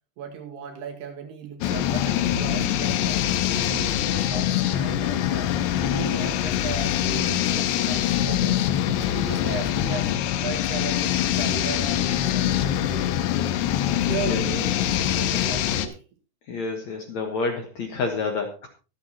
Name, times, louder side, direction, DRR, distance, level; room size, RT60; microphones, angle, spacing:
voice 1, 0.2-3.2 3.5-5.5 5.8-8.7 9.1-10.1 10.4-13.1 13.9-16.0, right 6 dB, 75° right, 3 dB, 3.9 m, -36 dB
sound 1, 1.6-15.9, left 11 dB, 90° left, 3.0 m, -24 dB
voice 2, 16.5-18.7, left 4 dB, 60° left, 3 dB, 2.0 m, -28 dB
23.5 x 8.1 x 2.9 m, 0.34 s
omnidirectional pair, 4.8 m